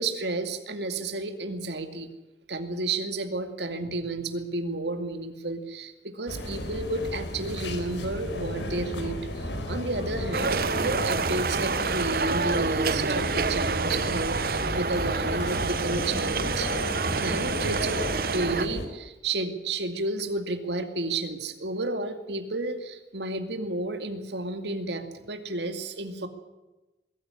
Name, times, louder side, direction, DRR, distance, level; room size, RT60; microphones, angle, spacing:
voice 1, 0.0-2.1 2.5-16.7 17.0-26.3, right 2 dB, 70° right, 7 dB, 2.4 m, -31 dB
sound 1, 6.3-18.9, equal, 80° left, 4.5 m, -33 dB
sound 2, 10.3-18.7, right 4 dB, 50° right, 0.8 m, -28 dB
22.0 x 14.5 x 10.0 m, 1.1 s
head